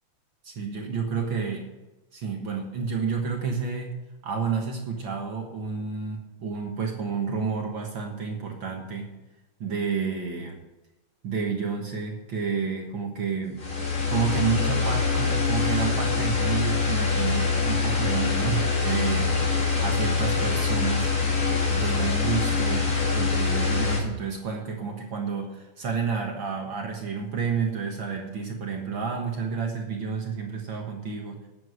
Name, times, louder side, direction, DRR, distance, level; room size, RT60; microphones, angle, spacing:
voice 1, 0.4-1.7 2.1-4.0 4.2-9.1 9.6-10.6 11.2-13.7 14.1-19.5 19.8-21.1 21.7-31.4, right 5 dB, 50° right, 1 dB, 1.7 m, -30 dB
sound 1, 13.6-24.0, left 4 dB, 30° left, 2.2 m, -24 dB
9.3 x 8.7 x 6.3 m, 1.1 s
omnidirectional pair, 3.6 m